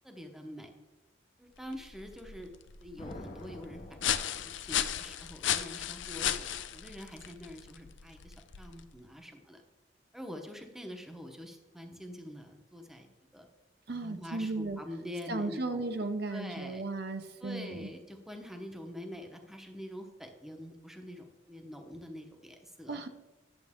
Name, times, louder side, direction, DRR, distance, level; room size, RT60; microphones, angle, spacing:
voice 1, 0.0-0.7 1.4-2.5 2.8-9.6 10.1-13.1 13.3-13.5 13.9-16.0 16.3-16.8 17.4-23.0, left 1 dB, ahead, 4 dB, 0.8 m, -45 dB
sound 1, 1.6-9.0, left 10 dB, 70° left, 0.5 m, -36 dB
sound 2, 3.0-5.1, left 1 dB, 35° left, 0.8 m, -48 dB
voice 2, 13.9-14.8 15.3-17.9 22.9-23.1, right 2 dB, 55° right, 7 dB, 0.7 m, -35 dB
10.5 x 7.6 x 3.6 m, 1.1 s
head